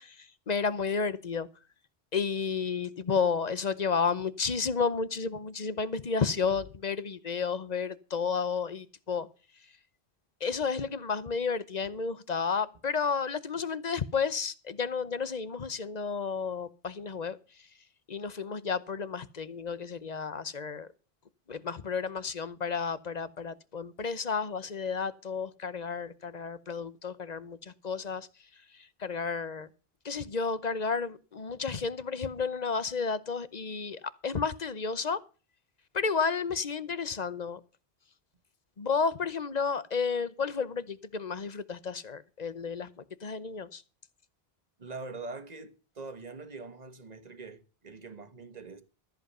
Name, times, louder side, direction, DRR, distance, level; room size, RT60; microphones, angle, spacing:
voice 1, 0.0-1.5 2.1-9.3 10.4-17.4 18.1-20.9 21.5-28.3 29.0-29.7 30.0-35.2 35.9-37.6 38.8-42.9 43.2-43.8, left 5 dB, 45° left, 0.9 m, -32 dB
voice 2, 44.8-48.8, right 3 dB, 40° right, 1.5 m, -43 dB
14.0 x 7.8 x 5.5 m
omnidirectional pair, 1.1 m